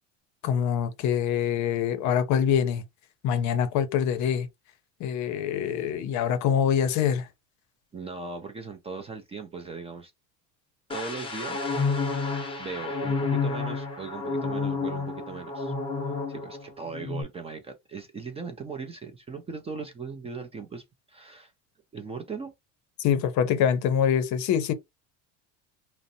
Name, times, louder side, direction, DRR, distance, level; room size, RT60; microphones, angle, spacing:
voice 1, 0.4-2.8 3.2-4.5 5.0-7.3 23.0-24.7, left 8 dB, 50° left, 0.6 m, -25 dB
voice 2, 7.9-10.1 10.9-11.7 12.6-15.7 16.3-21.5 21.9-22.5, right 4 dB, 15° right, 0.3 m, -39 dB
sound 1, 10.9-16.6 16.9-17.2, left 4 dB, 15° left, 0.7 m, -30 dB
2.5 x 2.0 x 2.6 m
supercardioid pair, 120°, 36 cm